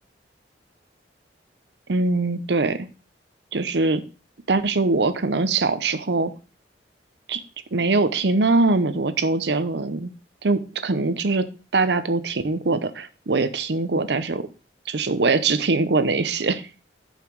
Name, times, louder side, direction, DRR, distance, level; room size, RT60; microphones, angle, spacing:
voice 1, 1.9-2.9 3.5-4.0 4.5-6.3 7.3-7.4 7.7-10.1 10.4-11.5 11.7-14.5 14.9-16.6, right 3 dB, 65° right, 13 dB, 0.7 m, -22 dB
7.3 x 5.7 x 4.6 m, 0.34 s
head